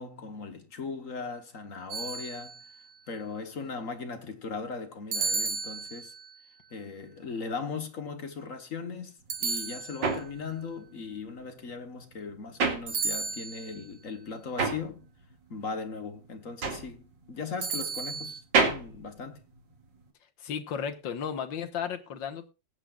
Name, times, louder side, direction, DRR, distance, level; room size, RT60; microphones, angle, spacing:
voice 1, 0.0-2.6 3.1-6.1 6.7-15.0 15.5-19.4, left 4 dB, 45° left, 1.5 m, -38 dB
sound 1, 1.9-2.8 5.1-6.4 9.3-10.4 12.9-13.8 17.6-18.4, right 5 dB, 75° right, 2.2 m, -33 dB
sound 2, 9.2-13.5 13.8-20.1, right 4 dB, 60° right, 2.8 m, -31 dB
voice 2, 20.4-22.5, left 7 dB, 65° left, 1.9 m, -34 dB
20.0 x 8.3 x 2.5 m
omnidirectional pair, 2.3 m